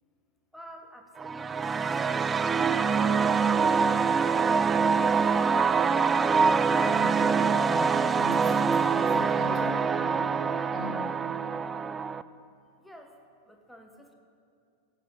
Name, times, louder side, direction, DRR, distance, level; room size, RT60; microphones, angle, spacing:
voice 1, 0.5-5.1 12.8-13.2 13.4-14.1, equal, ahead, 3 dB, 1.2 m, -49 dB
sound 1, 1.2-12.2, right 5 dB, 15° right, 0.3 m, -25 dB
voice 2, 6.8-11.2, left 2 dB, 30° left, -2 dB, 2.5 m, -40 dB
16.0 x 6.8 x 5.5 m, 2.4 s
figure-of-eight pair, 90°, 0 cm